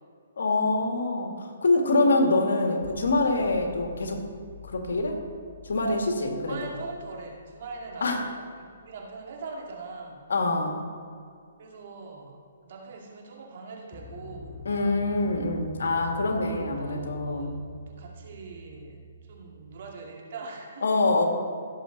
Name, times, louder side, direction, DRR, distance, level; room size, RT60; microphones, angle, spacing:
voice 1, 0.4-4.2 4.6-5.2 5.6-6.7 8.0-8.2 10.3-10.8 14.7-17.5 20.8-21.2, left 2 dB, 80° left, 3 dB, 1.9 m, -25 dB
sound 1, 2.8-10.6 13.9-20.0, left 1 dB, 30° left, 1.0 m, -46 dB
voice 2, 6.5-10.2 11.6-14.6 16.5-17.5 17.9-19.0 19.3-20.9, right 3 dB, 50° right, 0 dB, 2.1 m, -42 dB
16.0 x 6.9 x 3.9 m, 2.3 s
hypercardioid pair, 155°, 0 cm